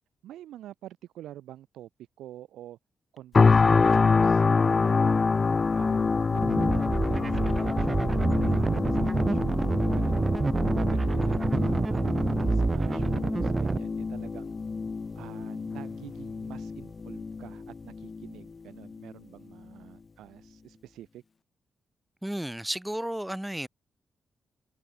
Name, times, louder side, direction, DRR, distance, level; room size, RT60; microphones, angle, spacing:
voice 1, 0.2-1.9 2.2-2.8 3.1-5.3 5.7-10.5 10.9-14.5 15.2-21.2, right 13 dB, 90° right, 2.0 m, -47 dB
sound 1, 3.3-18.4 18.8-19.0, left 4 dB, 45° left, 0.9 m, -26 dB
sound 2, 6.4-13.8, right 3 dB, 35° right, 0.4 m, -27 dB
voice 2, 22.2-23.7, right 1 dB, 5° right, 4.6 m, -33 dB
supercardioid pair, 60°, 0 cm